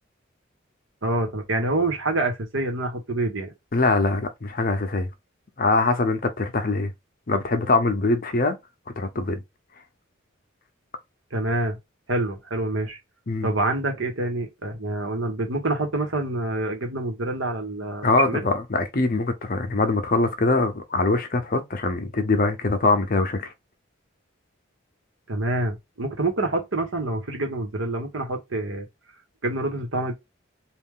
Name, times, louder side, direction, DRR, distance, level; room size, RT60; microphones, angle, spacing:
voice 1, 1.0-3.5 11.3-11.8 12.1-13.0 13.4-18.5 25.3-28.9 29.4-30.1, right 2 dB, 75° right, 1.2 m, -26 dB
voice 2, 3.7-5.1 5.6-6.9 7.3-8.6 9.0-9.4 13.3-13.5 18.0-23.5, left 3 dB, 45° left, 0.7 m, -23 dB
3.2 x 2.4 x 3.7 m
head